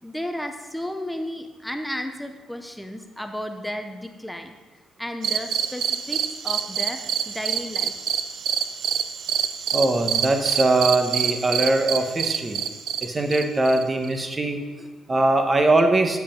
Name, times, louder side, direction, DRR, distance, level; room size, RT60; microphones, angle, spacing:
voice 1, 0.0-4.6 5.0-7.9, equal, 5° left, 6 dB, 0.6 m, -33 dB
sound 1, 5.2-14.2, right 8 dB, 70° right, 0.4 m, -27 dB
voice 2, 9.7-12.6 13.0-16.2, right 2 dB, 25° right, 5 dB, 1.0 m, -21 dB
9.3 x 5.3 x 5.2 m, 1.3 s
cardioid pair, 90°, 0 cm